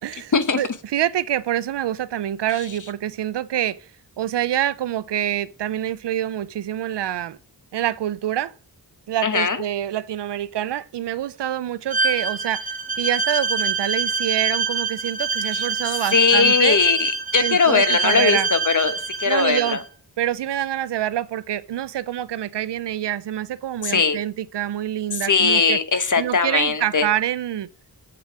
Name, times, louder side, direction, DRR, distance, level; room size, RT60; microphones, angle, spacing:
voice 1, 0.0-3.9 4.2-7.4 7.7-8.5 9.1-12.7 13.0-16.8 17.4-18.5 19.3-19.8 20.2-25.8 26.2-27.7, right 12 dB, 85° right, 0.5 m, -26 dB
voice 2, 9.2-9.6 15.5-15.7 16.1-18.9 19.2-19.8 23.8-24.2 25.2-27.1, left 5 dB, 50° left, 1.1 m, -19 dB
Bowed string instrument, 11.9-19.8, right 4 dB, 20° right, 3.0 m, -25 dB
7.7 x 6.9 x 6.0 m
wide cardioid pair, 65°, 41 cm